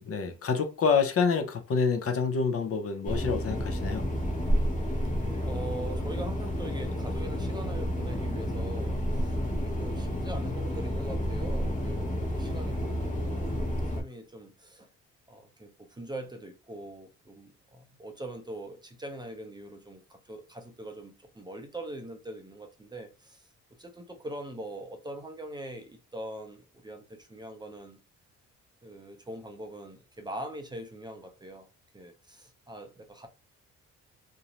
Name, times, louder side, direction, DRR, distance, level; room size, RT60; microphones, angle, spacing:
voice 1, 0.0-4.1, left 5 dB, 50° left, 0.6 m, -27 dB
sound 1, 3.0-14.0, equal, 25° left, 0.9 m, -30 dB
voice 2, 5.5-14.9 15.3-23.5 23.8-28.0 28.8-31.7 31.9-33.3, right 1 dB, 15° right, 0.5 m, -42 dB
2.6 x 2.0 x 2.9 m
cardioid pair, 90°, 30 cm